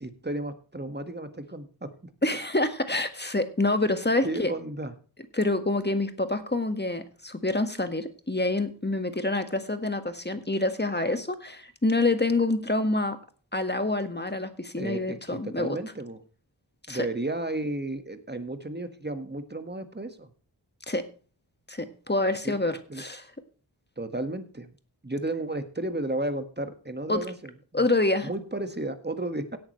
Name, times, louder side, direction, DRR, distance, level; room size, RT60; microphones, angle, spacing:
voice 1, 0.0-2.1 4.2-4.9 14.8-16.2 16.9-20.3 22.5-22.6 22.9-23.0 24.0-24.7 25.0-27.3 27.7-27.9 28.2-29.6, right 2 dB, 25° right, 8 dB, 1.7 m, -33 dB
voice 2, 2.2-4.5 5.3-13.2 13.5-15.8 16.9-17.1 20.9-21.0 21.7-23.3 27.1-27.3 27.7-28.3, left 2 dB, 25° left, 8 dB, 1.7 m, -27 dB
17.5 x 8.7 x 3.2 m, 0.38 s
wide cardioid pair, 55°, 42 cm